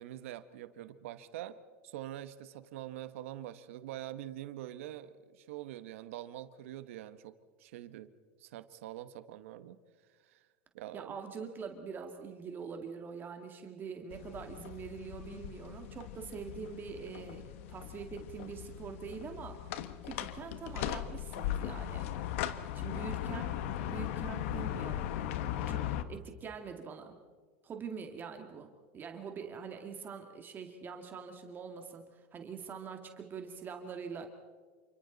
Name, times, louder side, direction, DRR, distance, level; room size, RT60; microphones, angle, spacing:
voice 1, 0.0-1.6 1.8-7.3 7.6-8.1 8.4-9.8 10.2-10.4 10.7-11.2, right 13 dB, 80° right, 12 dB, 1.2 m, -45 dB
voice 2, 10.9-19.6 20.0-22.1 22.7-25.1 25.7-27.2 27.6-34.3, right 6 dB, 30° right, 4 dB, 2.1 m, -44 dB
sound 1, 14.1-26.0, left 11 dB, 75° left, 1.3 m, -38 dB
28.5 x 25.0 x 4.1 m, 1.5 s
supercardioid pair, 130°, 7 cm